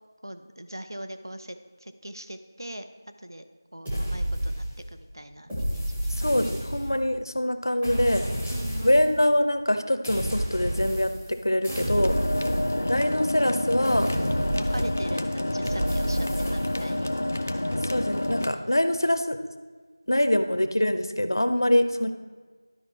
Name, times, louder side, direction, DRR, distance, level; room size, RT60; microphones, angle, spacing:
voice 1, 0.2-2.9 3.2-6.5 7.7-7.9 8.5-9.0 11.7-12.4 14.6-17.1 21.9-22.1, right 1 dB, 80° right, 9 dB, 0.6 m, -41 dB
sound 1, 3.8-5.0 5.5-7.1 7.8-9.1 10.0-11.3 11.6-13.2 13.8-15.2 15.6-16.9, equal, 5° right, 0.7 m, -30 dB
voice 2, 6.2-8.2 8.8-12.1 12.9-14.1 15.2-15.3 17.9-19.4 20.1-22.2, left 1 dB, 70° left, 8 dB, 0.7 m, -24 dB
sound 2, 11.9-18.5, left 1 dB, 30° left, 0.4 m, -28 dB
11.5 x 4.7 x 4.2 m, 1.4 s
figure-of-eight pair, 175°, 2 cm